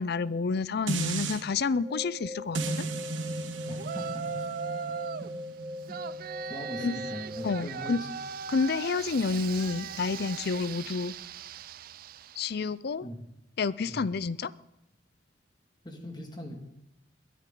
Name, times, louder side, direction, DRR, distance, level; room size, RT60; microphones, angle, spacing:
voice 1, 0.0-2.9 6.8-6.9 7.4-8.0 8.5-11.1 12.4-13.1 13.6-14.5, left 4 dB, 55° left, 18 dB, 0.5 m, -29 dB
sound 1, 0.9-1.4 2.5-7.7 8.1-8.2, right 3 dB, 75° right, 1.4 m, -36 dB
sound 2, 1.8-7.7, left 1 dB, 20° right, 1.0 m, -41 dB
voice 2, 3.7-4.4 5.2-5.3 5.9-6.0 6.5-8.1 13.0-13.2 13.8-14.1 15.8-16.7, equal, 25° left, 3 dB, 2.1 m, -41 dB
Yell, 3.8-5.3 5.9-12.6, right 7 dB, 50° right, 0.4 m, -39 dB
22.0 x 10.0 x 3.8 m, 0.91 s
head